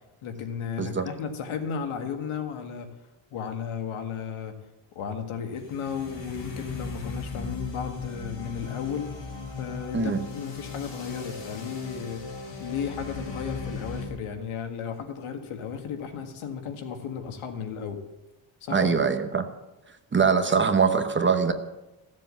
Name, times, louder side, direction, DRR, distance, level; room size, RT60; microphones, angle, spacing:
voice 1, 0.2-2.9 3.3-4.5 5.0-9.1 9.6-12.2 12.6-18.0 18.6-18.9, left 7 dB, 80° left, 6 dB, 1.9 m, -34 dB
sound 1, 5.6-14.1, left 3 dB, 60° left, 4.2 m, -37 dB
voice 2, 18.7-19.5 20.1-21.5, right 5 dB, 25° right, 8 dB, 1.0 m, -22 dB
15.5 x 7.5 x 7.5 m, 0.99 s
cardioid pair, 135°, 48 cm